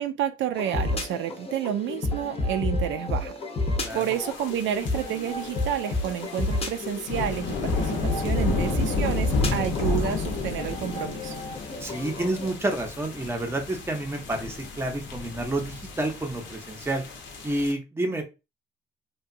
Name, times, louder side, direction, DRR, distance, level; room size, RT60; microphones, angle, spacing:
voice 1, 0.0-3.3 3.9-11.3, right 10 dB, 75° right, 0.4 m, -30 dB
sound 1, 0.6-12.5, left 2 dB, 30° left, 0.7 m, -31 dB
sound 2, 3.9-17.7, left 3 dB, 70° left, 0.7 m, -32 dB
voice 2, 11.8-17.0 17.4-18.2, right 1 dB, 10° right, 0.6 m, -29 dB
2.8 x 2.2 x 2.5 m
cardioid pair, 100°, 20 cm